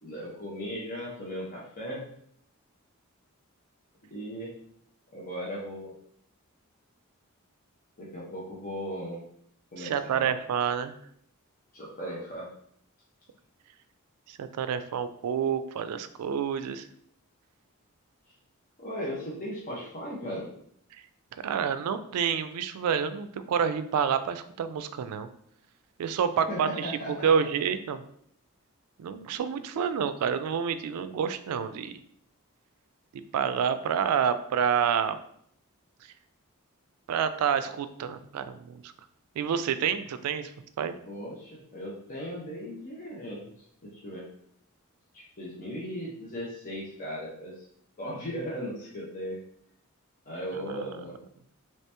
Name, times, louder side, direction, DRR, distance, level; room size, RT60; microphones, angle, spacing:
voice 1, 0.0-2.0 4.1-4.5 5.1-5.9 8.0-9.2 9.7-10.3 11.7-12.5 18.8-20.5 26.5-27.3 41.1-44.2 45.1-47.6 48.0-49.4 50.2-51.2, equal, 40° left, -6 dB, 0.7 m, -37 dB
voice 2, 9.8-10.9 14.3-16.9 21.3-25.3 26.0-28.0 29.0-32.0 33.1-35.2 37.1-38.9 39.4-40.5 40.8-41.0 50.5-50.9, right 7 dB, 90° right, 12 dB, 0.3 m, -28 dB
3.1 x 2.8 x 3.3 m, 0.67 s
head